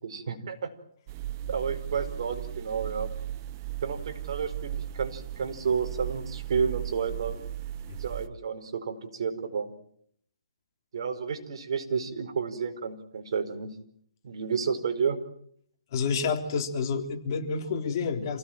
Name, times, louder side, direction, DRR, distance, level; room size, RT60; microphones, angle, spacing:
voice 1, 0.0-0.7 1.5-3.1 3.8-7.4 8.0-9.7 10.9-13.7 14.2-15.2, right 6 dB, 60° right, 6 dB, 4.9 m, -31 dB
sound 1, 1.1-8.3, right 12 dB, 30° right, 1.1 m, -37 dB
voice 2, 15.9-18.4, left 5 dB, 40° left, 4 dB, 3.6 m, -29 dB
28.0 x 17.5 x 9.1 m, 0.66 s
hypercardioid pair, 155°, 3 cm